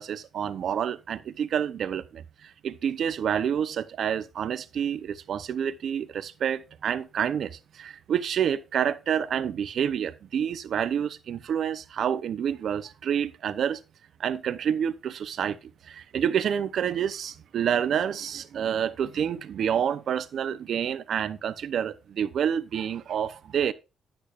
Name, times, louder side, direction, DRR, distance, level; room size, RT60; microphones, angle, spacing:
voice 1, 0.0-13.8 14.2-15.6 15.8-23.7, right 8 dB, 65° right, 0.6 m, -28 dB
9.9 x 8.8 x 2.5 m
cardioid pair, 90°, 0 cm